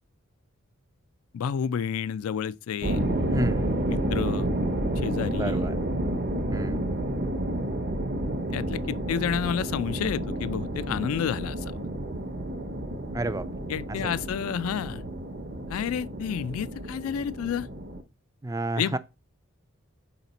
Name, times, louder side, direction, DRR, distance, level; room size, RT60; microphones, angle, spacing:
voice 1, 1.3-3.0 3.9-4.5 5.0-5.7 8.5-11.7 13.7-15.0 15.7-17.7 18.8-19.0, left 8 dB, 80° left, 0.3 m, -30 dB
sound 1, 2.8-18.0, right 1 dB, 45° right, 0.7 m, -30 dB
voice 2, 3.3-3.8 5.4-5.8 6.5-6.8 13.1-13.5 13.9-14.2 18.4-19.0, right 2 dB, 15° right, 0.3 m, -31 dB
5.9 x 4.9 x 4.0 m
head